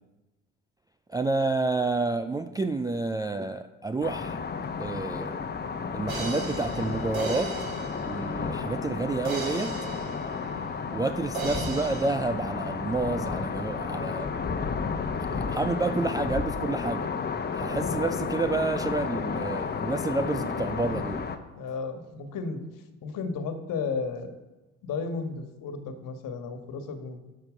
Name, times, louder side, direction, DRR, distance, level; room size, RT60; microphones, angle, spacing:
voice 1, 1.1-4.4 4.8-5.4 5.9-7.5 8.0-9.7 10.9-14.3 15.2-17.1 17.5-21.2, right 3 dB, 10° right, 6 dB, 0.4 m, -29 dB
sound 1, 4.0-21.4, left 5 dB, 25° left, 1.0 m, -32 dB
sound 2, 6.1-8.7 9.2-11.0 11.3-12.1, right 4 dB, 80° right, 1.5 m, -37 dB
voice 2, 21.5-22.6 23.0-24.3 24.8-27.2, left 4 dB, 50° left, 7 dB, 1.6 m, -33 dB
12.0 x 6.7 x 5.0 m, 1.1 s
figure-of-eight pair, 55°, 41 cm